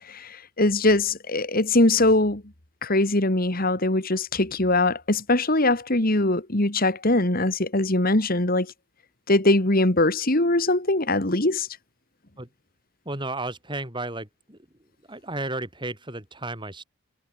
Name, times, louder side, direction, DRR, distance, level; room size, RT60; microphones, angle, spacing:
voice 1, 0.0-2.4 2.8-8.7 9.3-11.7, left 2 dB, 40° left, 2.3 m, -22 dB
voice 2, 13.0-14.6 15.1-16.8, right 2 dB, 20° right, 7.6 m, -33 dB
head